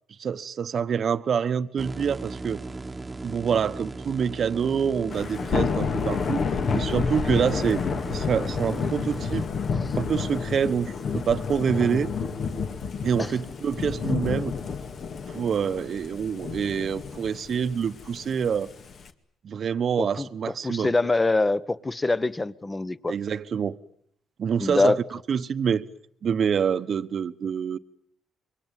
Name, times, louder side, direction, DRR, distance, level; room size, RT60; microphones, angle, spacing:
voice 1, 0.2-2.6 3.2-6.4 6.7-7.8 8.1-9.4 9.9-12.1 13.0-14.5 15.3-18.7 19.4-20.9 23.1-23.8 24.4-25.0 25.3-25.9 26.2-27.8, right 7 dB, 55° right, 1.1 m, -26 dB
sound 1, 1.8-9.5, right 3 dB, 20° right, 1.4 m, -38 dB
Thunder / Rain, 5.1-19.1, left 5 dB, 55° left, 2.3 m, -30 dB
voice 2, 20.0-23.1 24.6-25.0, left 2 dB, 20° left, 1.2 m, -25 dB
27.0 x 23.5 x 9.2 m
cardioid pair, 90°, 0 cm